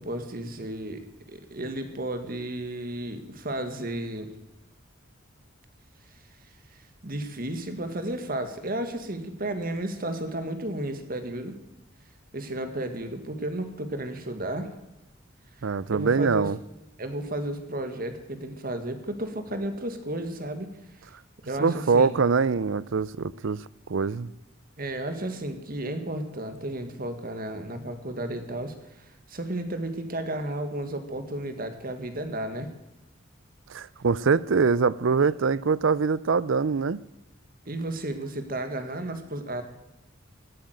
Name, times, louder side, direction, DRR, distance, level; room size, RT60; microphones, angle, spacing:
voice 1, 0.0-4.3 7.0-11.6 12.3-14.7 15.9-16.5 17.0-20.7 21.5-22.1 24.8-32.7 37.7-39.6, right 1 dB, 45° right, 1.8 m, -33 dB
voice 2, 15.6-16.6 21.6-23.6 23.9-24.3 33.7-37.0, right 5 dB, 70° right, 0.5 m, -23 dB
17.0 x 8.9 x 7.9 m
head